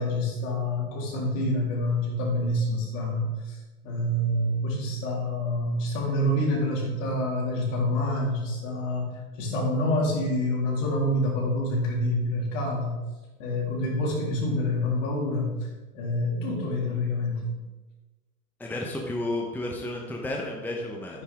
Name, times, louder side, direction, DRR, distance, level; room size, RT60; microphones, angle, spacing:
voice 1, 0.0-3.6 3.8-9.1 9.4-13.0 13.4-15.7 15.9-17.5, left 1 dB, 55° left, -2 dB, 3.8 m, -27 dB
voice 2, 18.6-21.2, left 1 dB, 5° left, 0 dB, 1.1 m, -32 dB
10.5 x 9.6 x 3.6 m, 1.2 s
hypercardioid pair, 105°, 46 cm